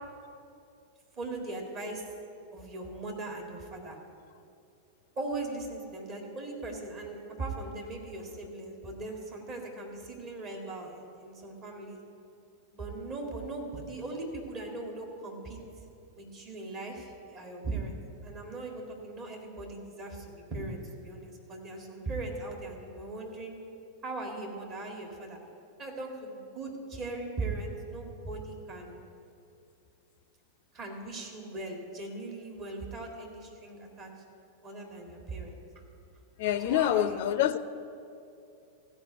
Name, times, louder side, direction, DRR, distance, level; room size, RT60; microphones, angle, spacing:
voice 1, 1.2-2.1 2.5-4.0 5.2-12.0 12.7-15.6 16.1-23.5 24.0-25.4 25.8-28.9 30.7-34.1 34.6-35.6 36.6-37.2, right 2 dB, 35° right, 1 dB, 2.0 m, -39 dB
voice 2, 36.4-37.6, left 11 dB, 50° left, 14 dB, 0.4 m, -26 dB
14.0 x 5.2 x 8.0 m, 2.6 s
figure-of-eight pair, 90°, 0 cm